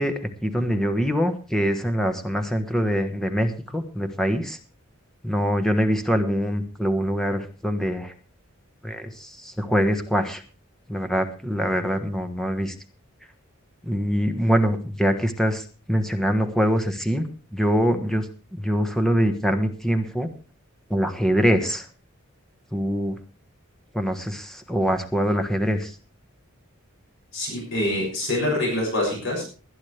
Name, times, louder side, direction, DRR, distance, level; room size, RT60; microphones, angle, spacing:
voice 1, 0.0-4.6 5.2-8.1 8.8-10.4 10.9-12.7 13.9-17.2 17.5-18.3 18.5-20.3 20.9-21.9 22.7-23.2 23.9-25.9, equal, ahead, 7 dB, 1.3 m, -24 dB
voice 2, 27.3-29.4, left 1 dB, 60° left, -2 dB, 6.7 m, -25 dB
20.0 x 10.5 x 3.3 m, 0.36 s
head